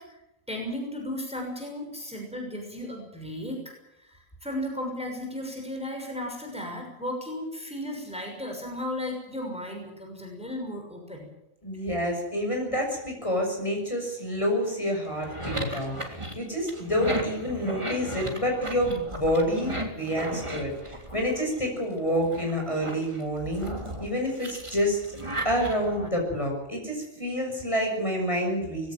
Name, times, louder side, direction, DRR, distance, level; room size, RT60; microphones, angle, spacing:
voice 1, 0.5-3.6 4.0-11.3, left 1 dB, 5° right, 1 dB, 6.2 m, -35 dB
voice 2, 11.6-23.7 24.0-25.0 25.4-28.9, equal, 25° left, 1 dB, 6.5 m, -28 dB
sound 1, 15.1-21.7 22.2-26.1, right 1 dB, 20° right, 3.2 m, -36 dB
21.0 x 17.0 x 9.1 m, 0.86 s
omnidirectional pair, 1.4 m